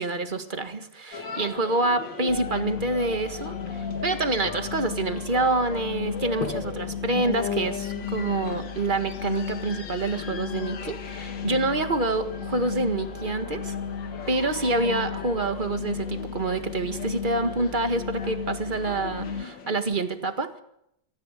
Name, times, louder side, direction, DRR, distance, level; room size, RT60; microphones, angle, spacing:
voice 1, 0.0-13.8 14.3-20.6, right 2 dB, 30° right, 8 dB, 1.8 m, -27 dB
sound 1, 1.1-19.8, left 6 dB, 85° left, 2.3 m, -38 dB
sound 2, 2.3-19.4, left 6 dB, 55° left, 1.4 m, -35 dB
24.5 x 14.5 x 9.3 m, 0.79 s
omnidirectional pair, 1.9 m